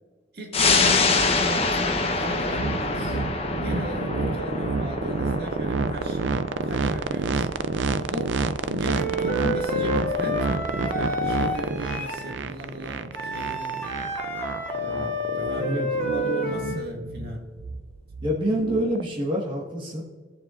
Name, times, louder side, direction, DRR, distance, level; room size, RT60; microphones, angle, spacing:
voice 1, 0.3-3.2 3.6-6.2 6.6-7.5 8.0-8.4 8.7-13.8 14.7-17.5, equal, 55° right, 1 dB, 2.0 m, -36 dB
sound 1, 0.5-11.5 11.9-12.0, left 3 dB, 30° left, 0.9 m, -27 dB
sound 2, 2.5-19.0, right 4 dB, 80° right, 0.5 m, -28 dB
Wind instrument woodwind instrument, 8.8-12.3 13.1-16.9, left 1 dB, 10° left, 1.7 m, -29 dB
voice 2, 15.6-15.9 18.2-20.0, equal, 25° right, -3 dB, 1.5 m, -26 dB
18.0 x 7.2 x 2.5 m, 1.5 s
head